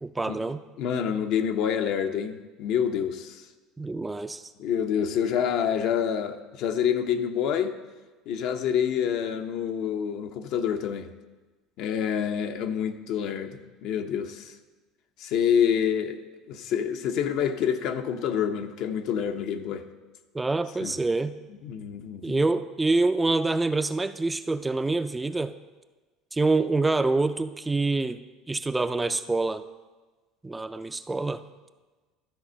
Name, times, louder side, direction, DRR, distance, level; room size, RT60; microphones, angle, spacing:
voice 1, 0.0-0.6 3.8-4.4 20.3-21.4 22.2-25.5 26.3-28.2 28.5-29.6 30.4-31.4, right 3 dB, 10° right, 11 dB, 0.3 m, -26 dB
voice 2, 0.8-3.5 4.6-7.7 8.3-11.1 11.8-14.6 15.2-16.2 16.5-19.8 20.8-21.0 21.6-22.5, left 8 dB, 65° left, 7 dB, 0.7 m, -27 dB
12.5 x 4.2 x 6.3 m, 1.2 s
supercardioid pair, 115°, 0 cm